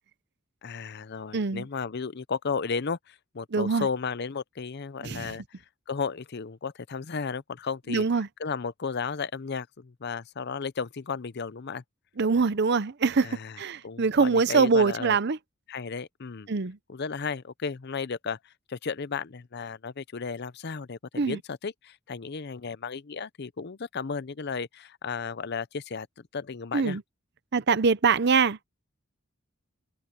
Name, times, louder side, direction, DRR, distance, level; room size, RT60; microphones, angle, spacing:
voice 1, 0.6-5.4 5.9-8.0 8.4-11.8 13.2-15.2 15.7-16.5 16.9-26.1 26.3-27.0, left 5 dB, 55° left, 0.6 m, -34 dB
voice 2, 1.3-1.6 3.5-3.9 5.0-5.3 7.9-8.3 12.2-15.4 16.5-16.8 21.2-21.4 26.7-27.0 27.5-28.6, right 4 dB, 55° right, 0.7 m, -24 dB
head